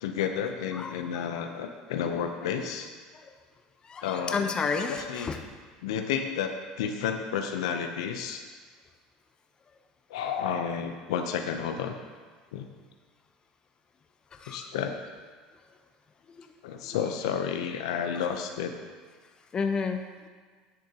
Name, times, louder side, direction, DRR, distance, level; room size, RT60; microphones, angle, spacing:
voice 1, 0.0-2.9 4.0-4.5 4.9-5.3 5.8-8.4 10.1-12.0 12.5-12.7 14.5-14.9 16.6-18.7, left 7 dB, 90° left, 5 dB, 0.6 m, -31 dB
voice 2, 0.7-1.3 3.2-3.3 3.8-5.4 14.3-14.7 16.3-16.5 16.8-17.0 18.1-18.3 19.5-20.0, left 5 dB, 30° left, 5 dB, 0.7 m, -32 dB
10.5 x 6.3 x 2.9 m, 1.5 s
supercardioid pair, 100°, 3 cm